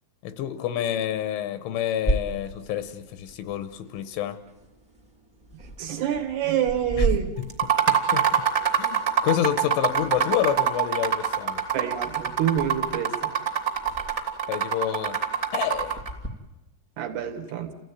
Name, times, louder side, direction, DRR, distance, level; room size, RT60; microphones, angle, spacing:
voice 1, 0.2-4.4 7.0-7.1 7.9-8.3 8.8-11.6 14.5-15.2 15.5-16.0, left 11 dB, 80° left, 3.3 m, -28 dB
sound 1, 2.0-16.3, right 1 dB, 5° right, 0.6 m, -36 dB
voice 2, 5.8-7.3 11.7-13.3 17.0-17.7, right 10 dB, 65° right, 3.2 m, -27 dB
sound 2, 7.5-16.1, right 8 dB, 25° right, 1.7 m, -24 dB
29.0 x 16.0 x 9.5 m
omnidirectional pair, 5.7 m